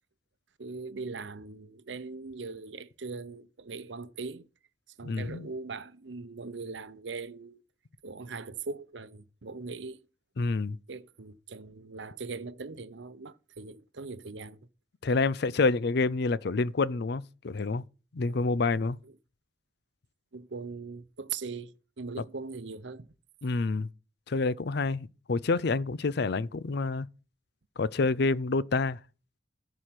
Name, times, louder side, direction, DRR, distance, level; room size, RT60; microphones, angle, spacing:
voice 1, 0.6-4.4 5.0-7.6 8.0-10.1 10.9-14.6 18.2-18.4 19.0-19.1 20.3-23.1, right 4 dB, 75° right, 0.8 m, -40 dB
voice 2, 5.0-5.5 10.4-10.8 15.0-17.8 18.1-19.0 23.4-23.9 24.3-27.1 27.8-29.0, left 3 dB, 60° left, 0.5 m, -28 dB
14.5 x 4.9 x 5.9 m
head